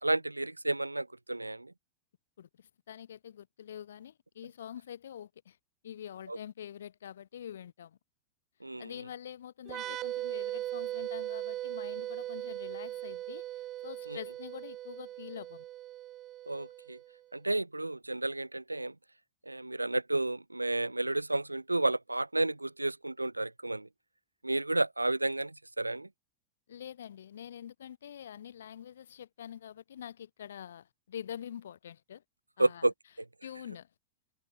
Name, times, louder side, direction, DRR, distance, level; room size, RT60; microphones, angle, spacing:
voice 1, 0.0-1.7 6.3-6.4 8.6-8.9 14.1-14.2 16.5-17.0 17.3-18.9 19.5-23.9 24.4-26.1 32.6-32.9, right 2 dB, 85° right, 0.9 m, -31 dB
voice 2, 2.4-5.6 5.8-8.0 8.8-13.4 13.8-15.7 26.7-32.2 32.6-32.9 33.4-33.9, left 9 dB, 65° left, 3.3 m, -45 dB
sound 1, 9.7-17.2, right 14 dB, 35° right, 0.8 m, -39 dB
figure-of-eight pair, 90°, 0 cm